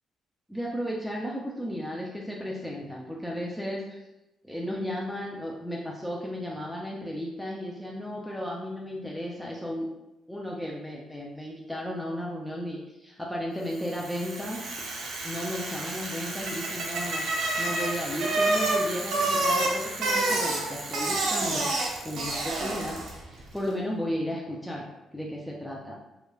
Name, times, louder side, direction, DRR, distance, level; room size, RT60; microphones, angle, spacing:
voice 1, 0.5-4.0 4.4-9.9 10.3-14.7 15.2-21.7 22.0-23.0 23.3-24.9 25.1-26.0, equal, 5° left, -3 dB, 0.3 m, -34 dB
Bicycle, 13.8-23.2, right 2 dB, 75° right, 0.6 m, -29 dB
2.9 x 2.1 x 2.2 m, 0.97 s
cardioid pair, 90°, 0 cm